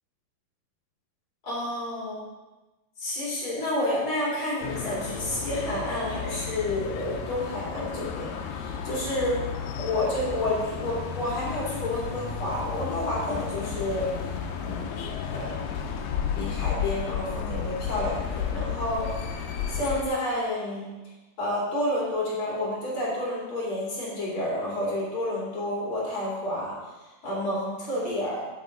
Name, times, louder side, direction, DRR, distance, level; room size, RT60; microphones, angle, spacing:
voice 1, 1.4-2.3 3.0-9.4 9.8-14.1 14.6-14.9 15.3-15.6 16.3-19.1 19.7-20.9 21.4-26.8 27.2-28.4, left 1 dB, 40° left, -6 dB, 3.2 m, -30 dB
sound 1, 4.6-20.0, left 7 dB, 85° left, 2.4 m, -33 dB
8.1 x 8.0 x 3.8 m, 1.1 s
omnidirectional pair, 4.0 m